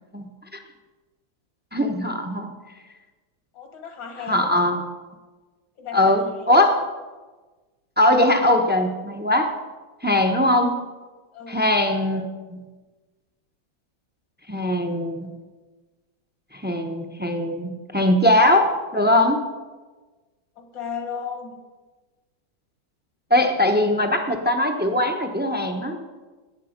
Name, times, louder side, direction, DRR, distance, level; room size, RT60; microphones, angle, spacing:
voice 1, 1.7-2.5 4.3-4.8 5.9-6.8 8.0-9.5 10.0-10.8 11.5-12.6 14.5-15.3 16.5-19.4 23.3-26.1, left 1 dB, 15° right, 4 dB, 0.4 m, -20 dB
voice 2, 3.5-4.8 5.8-6.7 11.3-11.7 20.6-21.6, left 6 dB, 75° left, 5 dB, 2.4 m, -35 dB
18.0 x 8.7 x 5.2 m, 1.3 s
omnidirectional pair, 2.1 m